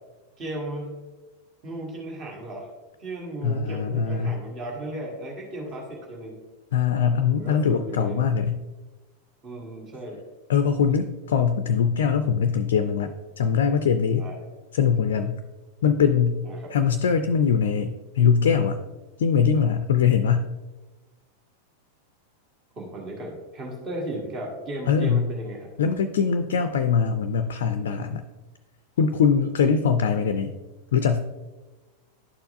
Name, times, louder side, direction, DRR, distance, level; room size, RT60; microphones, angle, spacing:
voice 1, 0.4-1.0 1.6-2.7 3.0-6.4 7.3-8.3 9.4-10.2 14.2-14.4 16.4-16.7 22.7-25.7, right 1 dB, 30° right, -1 dB, 1.5 m, -35 dB
voice 2, 3.4-4.4 6.7-8.6 10.5-14.3 14.7-15.4 15.8-16.4 16.7-18.8 19.2-20.5 24.9-25.3 25.8-28.2 29.0-30.5 30.9-31.2, left 6 dB, 60° left, 9 dB, 0.3 m, -22 dB
11.5 x 4.5 x 2.5 m, 1.2 s
figure-of-eight pair, 90°, 0 cm